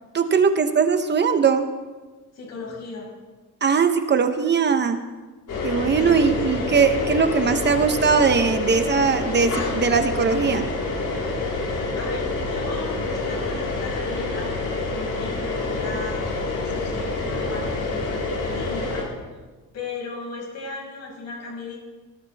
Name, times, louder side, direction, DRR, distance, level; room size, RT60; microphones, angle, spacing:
voice 1, 0.1-1.7 3.6-5.1 5.6-10.7, right 5 dB, 30° right, 8 dB, 0.9 m, -20 dB
voice 2, 2.3-3.1 5.9-6.8 12.0-16.2 16.6-19.1 19.7-21.8, left 3 dB, 50° left, -1 dB, 5.7 m, -36 dB
sound 1, 5.5-19.0, left 3 dB, 70° left, 4.2 m, -27 dB
19.5 x 16.5 x 3.5 m, 1.3 s
cardioid pair, 160°, 33 cm